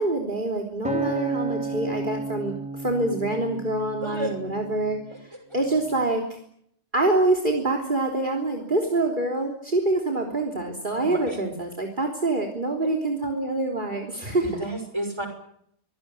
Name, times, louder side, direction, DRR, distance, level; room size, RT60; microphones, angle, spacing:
voice 1, 0.0-6.4 6.9-14.5, right 2 dB, 45° right, 4 dB, 3.8 m, -26 dB
Acoustic guitar, 0.8-5.2 5.8-6.0, right 3 dB, 5° right, 4.7 m, -32 dB
voice 2, 11.0-11.4 14.4-15.3, right 1 dB, 20° right, 6 dB, 6.0 m, -31 dB
24.5 x 18.5 x 9.7 m, 0.70 s
omnidirectional pair, 1.2 m